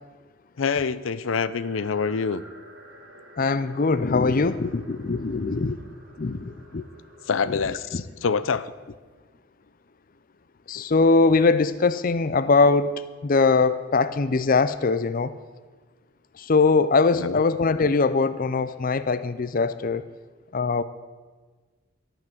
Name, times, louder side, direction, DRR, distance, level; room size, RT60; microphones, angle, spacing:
voice 1, 0.6-2.4 7.3-8.7 10.8-10.9 17.1-17.4, left 5 dB, 90° left, 0.6 m, -26 dB
sound 1, 1.5-7.5, equal, 75° right, 3.3 m, -49 dB
voice 2, 3.4-5.8 6.2-6.8 7.5-7.6 7.9-8.0 10.7-15.3 16.3-20.0 20.5-20.8, left 4 dB, 45° left, 0.6 m, -22 dB
13.0 x 9.1 x 7.7 m
head